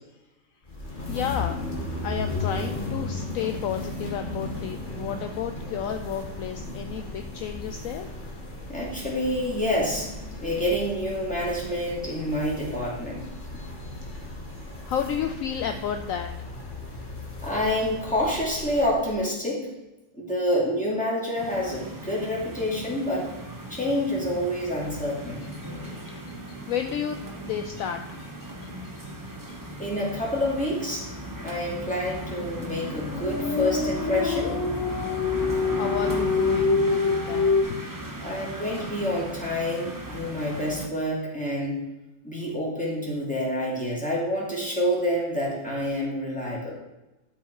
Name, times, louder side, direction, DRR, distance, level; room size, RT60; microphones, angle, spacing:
sound 1, 0.6-19.2, left 2 dB, 30° left, 1.6 m, -36 dB
voice 1, 1.1-1.6 2.0-8.1 10.3-10.4 13.3-16.3 25.6-27.2 27.4-29.1 29.5-29.8 35.7-37.8, left 8 dB, 70° left, 6 dB, 0.8 m, -33 dB
voice 2, 8.7-10.1 10.4-13.3 17.4-19.7 20.1-23.3 23.7-25.4 29.8-31.1 31.4-34.6 38.2-41.8 42.2-46.7, left 1 dB, 5° left, -5 dB, 2.6 m, -28 dB
sound 2, 21.4-40.9, right 1 dB, 20° right, 0.6 m, -37 dB
sound 3, 32.9-37.6, left 4 dB, 55° left, 1.2 m, -25 dB
12.0 x 4.6 x 4.6 m, 1.0 s
omnidirectional pair, 1.9 m